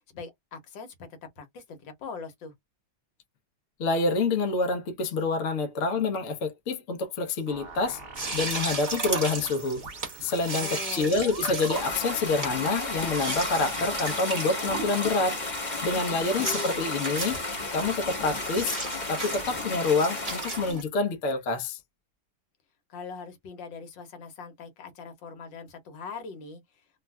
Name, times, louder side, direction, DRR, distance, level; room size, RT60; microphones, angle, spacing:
voice 1, 0.1-2.5 10.5-11.1 16.1-16.8 22.9-27.0, left 5 dB, 75° left, 1.6 m, -41 dB
voice 2, 3.8-8.0 8.3-9.8 10.2-15.4 15.8-17.4 17.7-18.8 19.1-21.8, left 3 dB, 55° left, 0.8 m, -27 dB
sound 1, 7.5-12.1, right 4 dB, 55° right, 0.6 m, -44 dB
sound 2, 8.1-20.8, right 3 dB, 25° right, 0.9 m, -36 dB
sound 3, 11.7-20.7, left 2 dB, 30° left, 1.1 m, -33 dB
3.3 x 2.4 x 2.2 m
omnidirectional pair, 2.1 m